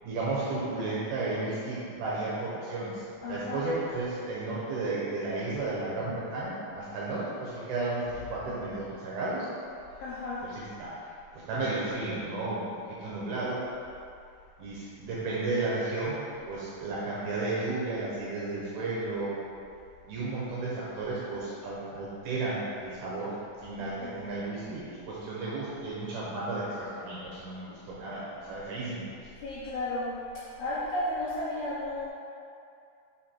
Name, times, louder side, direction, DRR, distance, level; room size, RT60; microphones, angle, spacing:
voice 1, 0.0-3.0 3.3-9.5 10.4-10.9 11.5-12.6 12.9-13.6 14.6-19.4 20.1-23.3 23.6-29.1, right 2 dB, 75° right, -7 dB, 2.4 m, -33 dB
voice 2, 3.2-3.6 10.0-10.4 23.8-24.1 29.4-30.1 30.6-32.1, left 1 dB, 75° left, -9 dB, 2.3 m, -33 dB
6.2 x 5.0 x 4.4 m, 2.5 s
omnidirectional pair, 5.3 m